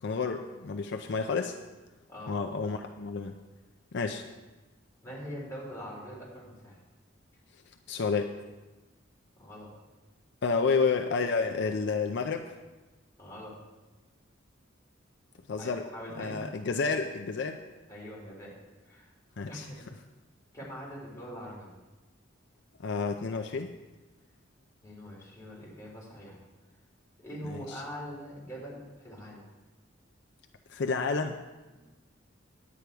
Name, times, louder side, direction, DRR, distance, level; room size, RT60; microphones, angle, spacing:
voice 1, 0.0-1.6 2.3-3.3 3.9-4.2 7.9-8.3 10.4-12.5 15.5-15.8 16.2-17.6 19.4-19.7 22.8-23.7 27.4-27.8 30.7-31.4, left 4 dB, 65° left, 4 dB, 0.5 m, -30 dB
voice 2, 5.0-6.8 9.4-9.7 13.2-13.6 15.6-16.4 17.9-18.6 18.8-19.1 19.5-19.8 20.5-21.7 24.8-26.4 27.2-29.4 31.7-31.8, equal, 15° left, -6 dB, 3.6 m, -43 dB
10.5 x 8.4 x 4.6 m, 1.2 s
head